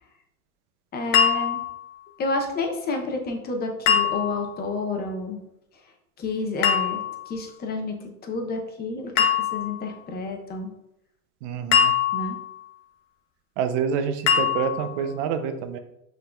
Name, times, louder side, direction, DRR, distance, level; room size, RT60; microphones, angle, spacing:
voice 1, 0.9-1.7 2.2-5.4 6.2-10.7 12.1-12.4, left 3 dB, 20° left, 3 dB, 0.7 m, -30 dB
sound 1, 1.1-1.9 3.9-4.6 6.6-7.3 9.2-9.9 11.7-12.6 14.3-15.0, left 8 dB, 65° left, 0.9 m, -22 dB
voice 2, 11.4-11.9 13.6-15.8, right 7 dB, 50° right, 9 dB, 0.7 m, -27 dB
5.4 x 3.9 x 2.4 m, 0.82 s
supercardioid pair, 125°, 44 cm